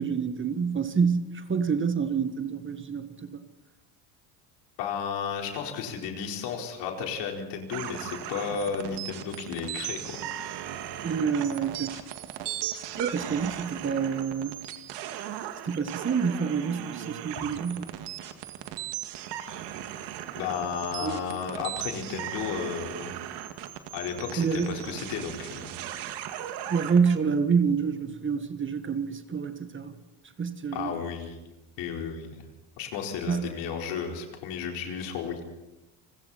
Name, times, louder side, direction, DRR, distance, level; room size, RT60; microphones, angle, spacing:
voice 1, 0.0-3.4 11.0-12.0 13.0-14.6 15.6-17.9 21.0-21.2 24.4-24.7 26.7-30.0 30.4-30.9 33.3-33.5, right 6 dB, 25° right, 1.7 m, -27 dB
voice 2, 4.8-10.1 17.4-17.5 20.4-23.1 23.9-25.7 30.7-31.4 31.8-32.4 32.8-35.4, left 6 dB, 70° left, 4.4 m, -33 dB
sound 1, 7.7-27.2, right 11 dB, 70° right, 2.2 m, -37 dB
29.5 x 20.5 x 4.3 m
supercardioid pair, 100°, 43 cm